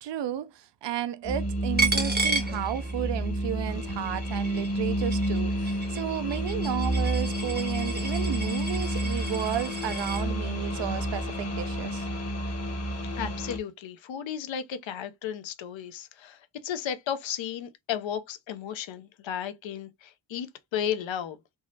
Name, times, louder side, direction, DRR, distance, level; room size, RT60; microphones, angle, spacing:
voice 1, 0.0-12.1, right 11 dB, 60° right, 0.5 m, -33 dB
sound 1, 1.2-13.6, equal, 30° left, 1.0 m, -30 dB
Coin (dropping), 1.8-3.3 3.6-10.2, right 3 dB, 20° right, 0.7 m, -33 dB
voice 2, 13.2-20.5 20.7-21.4, left 9 dB, 65° left, 0.7 m, -34 dB
3.5 x 2.0 x 2.7 m
cardioid pair, 60°, 49 cm